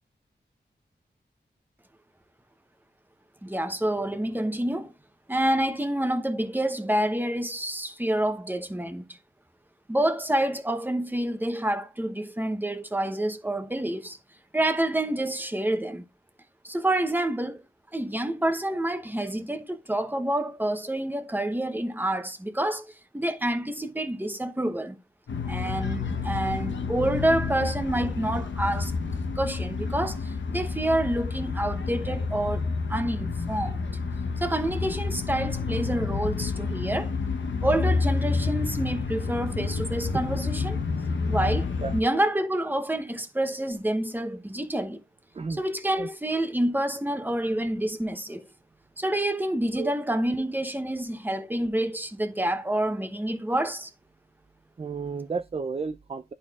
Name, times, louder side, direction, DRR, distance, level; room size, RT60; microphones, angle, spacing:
voice 1, 3.4-4.9 5.3-9.0 9.9-14.2 14.5-16.0 16.6-17.6 17.9-22.9 23.1-25.0 25.5-28.9 29.4-33.9 34.4-37.1 37.6-40.8 41.3-45.0 45.5-48.5 49.0-53.9, right 1 dB, 10° right, 0.9 m, -28 dB
sound 1, 25.3-42.0, left 4 dB, 90° left, 0.8 m, -29 dB
voice 2, 54.8-56.2, right 4 dB, 35° right, 0.4 m, -32 dB
11.0 x 4.3 x 2.4 m
wide cardioid pair, 65°, 19 cm